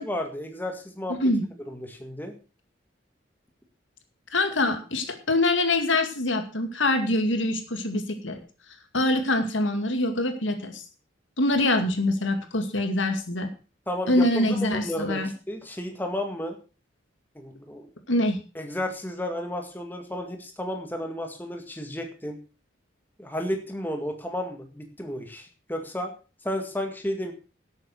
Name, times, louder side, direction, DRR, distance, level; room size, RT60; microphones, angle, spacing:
voice 1, 0.0-1.3 1.7-2.4 13.9-16.6 17.4-17.9 18.6-22.4 23.2-26.1 26.4-27.3, left 1 dB, 10° left, 4 dB, 1.9 m, -32 dB
voice 2, 4.3-8.4 8.9-10.8 11.4-13.5 14.1-15.3 18.1-18.4, left 1 dB, 85° left, 6 dB, 2.3 m, -24 dB
12.0 x 8.3 x 6.3 m, 0.35 s
head